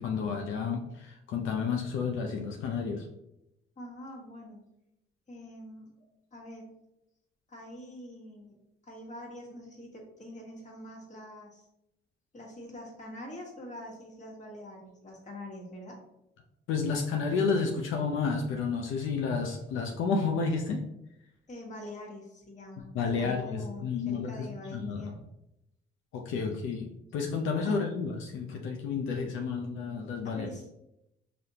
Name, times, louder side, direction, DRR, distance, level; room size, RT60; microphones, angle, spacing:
voice 1, 0.0-3.1 16.7-20.8 22.9-25.1 26.1-30.5, left 5 dB, 85° left, 2 dB, 0.5 m, -31 dB
voice 2, 3.8-4.6 5.3-6.7 7.5-8.6 8.8-11.7 12.3-16.0 21.5-22.9 23.2-25.1 27.6-27.8 30.2-30.6, left 1 dB, 35° left, -2 dB, 1.4 m, -45 dB
5.0 x 2.7 x 2.8 m, 0.85 s
cardioid pair, 90°, 20 cm